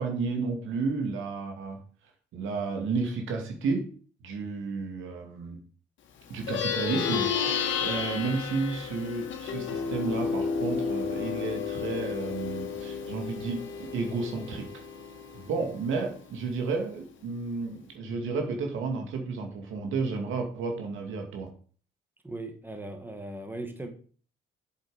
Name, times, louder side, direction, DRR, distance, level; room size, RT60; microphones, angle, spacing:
voice 1, 0.0-1.8 2.3-3.9 4.2-5.6 6.3-7.6 7.8-14.7 15.3-21.5, right 4 dB, 80° right, 3 dB, 2.3 m, -32 dB
Plucked string instrument, 6.3-16.1, left 6 dB, 75° left, 1.9 m, -32 dB
voice 2, 22.2-23.9, right 2 dB, 10° right, 5 dB, 1.9 m, -38 dB
7.6 x 7.2 x 5.1 m, 0.43 s
cardioid pair, 90°, 20 cm